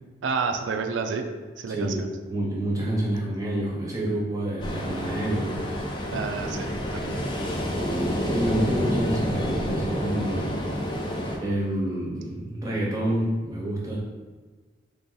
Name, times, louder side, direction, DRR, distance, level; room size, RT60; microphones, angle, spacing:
voice 1, 0.2-1.2 1.6-1.9 6.1-7.3, right 5 dB, 85° right, 6 dB, 0.4 m, -29 dB
voice 2, 1.7-2.0 2.3-5.6 7.7-10.5 11.4-14.0, right 1 dB, 20° right, -4 dB, 0.7 m, -28 dB
Ocean, 4.6-11.4, equal, 25° left, 0.4 m, -29 dB
3.3 x 2.6 x 3.8 m, 1.4 s
head